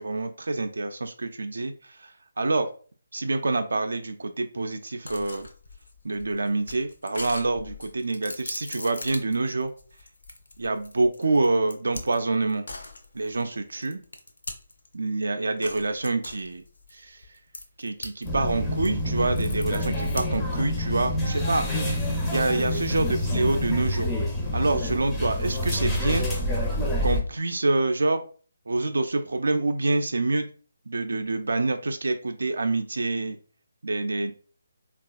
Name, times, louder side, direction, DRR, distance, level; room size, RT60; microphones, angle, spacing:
voice 1, 0.0-2.1 2.4-2.7 3.1-5.5 6.0-9.7 10.6-12.7 13.1-14.0 14.9-16.6 16.9-17.2 17.8-22.0 22.3-24.1 24.5-26.3 27.0-28.2 28.7-30.5 30.9-33.4 33.8-34.3, right 2 dB, 60° right, 7 dB, 0.3 m, -26 dB
sound 1, 5.1-14.9 15.6-18.3 18.6-20.6, left 2 dB, 60° left, 0.5 m, -41 dB
sound 2, 18.2-27.2, left 1 dB, 5° left, 0.4 m, -27 dB
3.2 x 2.3 x 2.3 m, 0.40 s
figure-of-eight pair, 145°, 0 cm